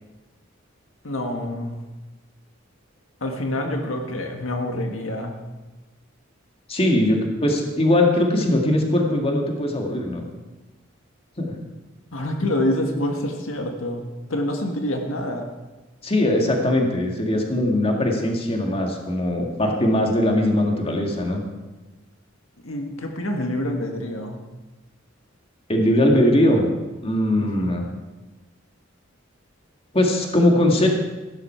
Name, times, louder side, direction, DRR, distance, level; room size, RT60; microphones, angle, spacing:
voice 1, 1.0-1.8 3.2-5.3 12.1-15.5 22.6-24.4 27.4-27.7, left 1 dB, 85° left, 3 dB, 1.7 m, -27 dB
voice 2, 6.7-10.2 11.4-11.5 16.0-21.4 25.7-26.6 27.0-27.8 29.9-30.9, left 1 dB, 30° left, 1 dB, 2.0 m, -20 dB
16.0 x 12.5 x 4.5 m, 1.1 s
head